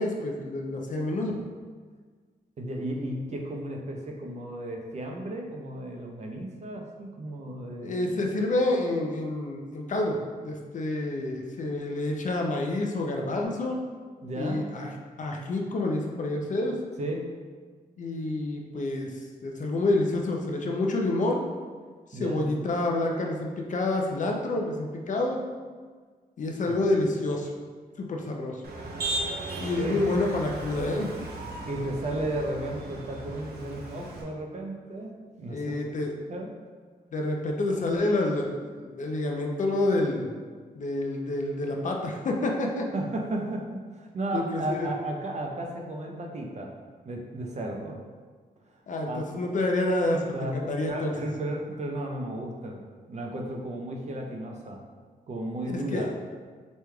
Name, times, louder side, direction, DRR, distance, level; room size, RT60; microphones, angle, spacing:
voice 1, 0.0-1.4 7.8-10.2 10.4-13.8 14.3-14.9 15.2-16.8 18.0-19.1 19.4-21.4 22.1-25.4 26.4-27.5 28.0-28.6 29.6-31.1 35.5-36.1 37.1-40.3 40.8-42.9 44.3-44.9 48.9-51.1 55.7-56.1, left 2 dB, 55° left, 1 dB, 0.5 m, -28 dB
voice 2, 2.6-8.1 14.2-14.7 17.0-17.3 22.1-22.5 26.7-26.8 29.8-30.0 31.7-36.5 37.8-37.9 42.9-46.7 47.0-48.0 48.7-48.8 49.1-49.3 50.3-50.6 50.9-52.8 53.1-54.8 55.3-56.1, right 1 dB, 45° right, 1 dB, 0.6 m, -34 dB
Motor vehicle (road), 28.6-34.2, right 2 dB, 85° right, 0.6 m, -36 dB
5.1 x 3.1 x 2.3 m, 1.5 s
wide cardioid pair, 125°, 16 cm